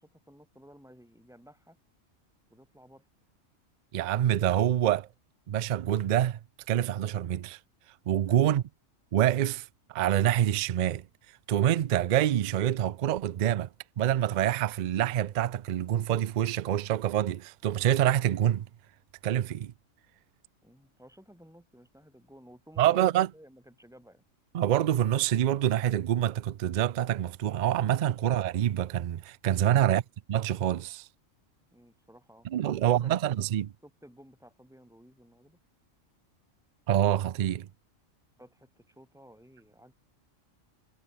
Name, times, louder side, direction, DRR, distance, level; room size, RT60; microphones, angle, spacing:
voice 1, 0.0-1.8 2.5-3.1 8.3-8.6 20.6-24.2 31.7-33.2 33.8-35.6 38.4-39.9, equal, ahead, 6.1 m, -55 dB
voice 2, 3.9-5.1 5.5-6.4 6.7-7.6 8.1-8.6 9.1-9.7 9.9-11.0 11.5-13.7 14.0-18.7 19.2-19.7 22.8-23.3 24.5-30.0 30.3-31.1 32.5-33.7 36.9-37.7, right 11 dB, 70° right, 0.4 m, -26 dB
omnidirectional pair, 1.3 m